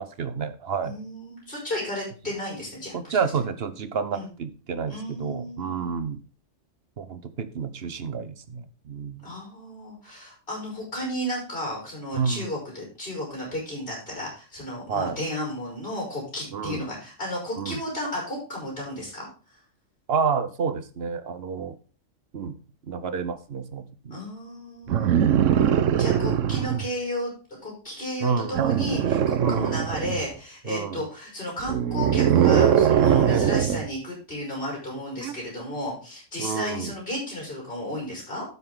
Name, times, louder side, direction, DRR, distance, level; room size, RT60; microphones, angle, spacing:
voice 1, 0.0-1.0 2.9-6.2 7.0-9.2 12.1-12.5 14.9-15.2 16.5-16.8 17.6-17.8 20.1-21.8 22.3-22.6 22.9-24.2 24.9-25.6 28.2-28.6 29.4-29.8 30.7-31.0 33.2-33.6 36.4-36.9, right 5 dB, 55° right, 12 dB, 1.0 m, -29 dB
voice 2, 0.8-3.2 4.1-4.3 4.9-6.0 9.2-19.3 24.1-25.2 26.0-27.3 27.6-38.5, left 1 dB, 45° left, -3 dB, 5.6 m, -33 dB
sound 1, 24.9-26.9 28.5-30.3 31.6-33.9 35.2-35.3, right 9 dB, 90° right, 1.1 m, -21 dB
12.5 x 5.6 x 3.7 m, 0.36 s
omnidirectional pair, 1.3 m